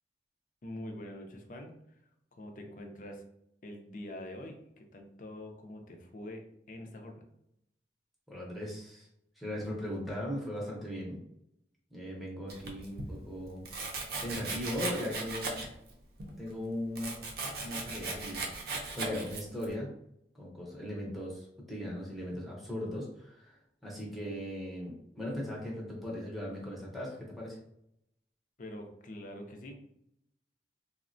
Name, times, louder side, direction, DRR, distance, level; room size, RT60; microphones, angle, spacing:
voice 1, 0.6-1.7 2.3-3.2 3.6-7.2 28.6-29.8, left 1 dB, 45° left, 4 dB, 0.5 m, -45 dB
voice 2, 8.3-9.1 9.4-11.2 11.9-13.6 14.2-15.5 16.4-17.2 17.6-18.5 18.9-19.9 20.3-27.6, left 1 dB, ahead, -5 dB, 0.6 m, -38 dB
Domestic sounds home sounds, 12.5-13.1 13.7-15.9 16.2-19.7, right 3 dB, 55° right, 0.5 m, -38 dB
3.4 x 2.1 x 2.5 m, 0.78 s
head